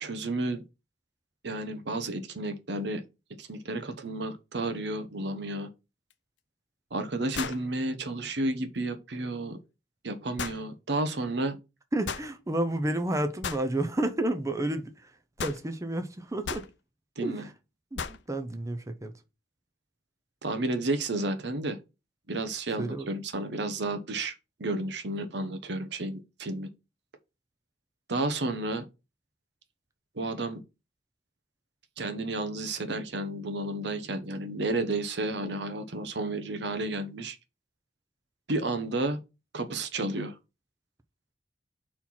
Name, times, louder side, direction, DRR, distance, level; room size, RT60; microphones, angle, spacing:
voice 1, 0.0-0.6 1.4-3.0 3.4-5.7 6.9-9.6 10.0-11.6 17.2-17.4 20.4-21.8 22.3-24.3 24.6-26.7 28.1-28.9 30.2-30.6 32.0-37.4 38.5-39.2 39.5-40.3, right 2 dB, 70° right, 1.0 m, -31 dB
sound 1, 6.1-6.2 7.3-7.7 10.4-10.6 12.1-12.3 13.4-13.7 15.4-15.6 16.4-16.7 18.0-18.2, left 6 dB, 90° left, 0.6 m, -35 dB
voice 2, 11.9-16.7 17.2-17.5 17.9-19.1 22.8-23.1, right 1 dB, 20° right, 0.7 m, -31 dB
4.4 x 4.4 x 5.7 m
head